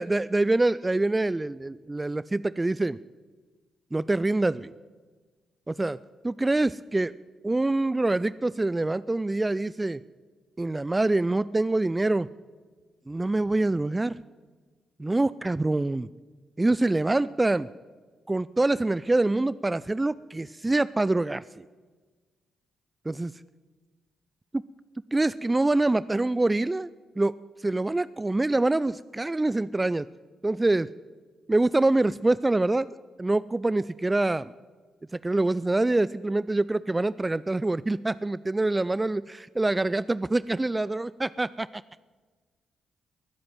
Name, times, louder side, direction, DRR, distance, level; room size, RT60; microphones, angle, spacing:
voice 1, 0.0-3.0 3.9-4.7 5.7-6.0 6.2-7.1 7.4-10.0 10.6-12.3 13.1-14.2 15.0-16.1 16.6-17.7 18.3-21.6 23.1-23.3 25.1-26.9 27.2-30.1 30.4-30.9 31.5-34.5 35.1-41.8, right 2 dB, 20° right, 18 dB, 0.4 m, -25 dB
20.0 x 7.8 x 9.1 m, 1.4 s
hypercardioid pair, 40°, 0 cm